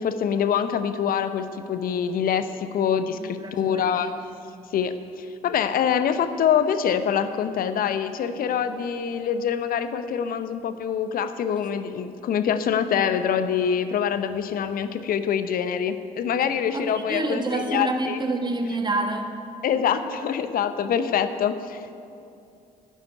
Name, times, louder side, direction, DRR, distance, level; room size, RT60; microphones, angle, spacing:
voice 1, 0.0-4.1 4.7-18.2 19.6-21.9, left 8 dB, 55° left, 11 dB, 0.8 m, -25 dB
voice 2, 3.2-4.1 4.5-4.6 16.7-19.3, right 2 dB, 25° right, 5 dB, 1.6 m, -28 dB
10.5 x 7.6 x 9.4 m, 2.6 s
hypercardioid pair, 50°, 18 cm